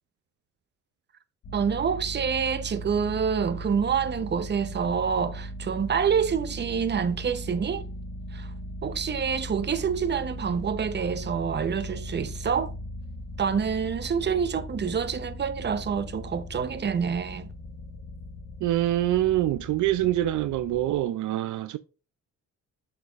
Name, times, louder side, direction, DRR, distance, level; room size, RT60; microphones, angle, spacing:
sound 1, 1.4-21.1, equal, 75° left, 2.7 m, -38 dB
voice 1, 1.5-7.8 8.3-8.5 8.8-12.7 13.4-17.5, right 6 dB, 35° right, 0.9 m, -27 dB
voice 2, 18.6-21.8, right 14 dB, 75° right, 0.6 m, -25 dB
8.4 x 6.7 x 2.5 m
cardioid pair, 90°, 30 cm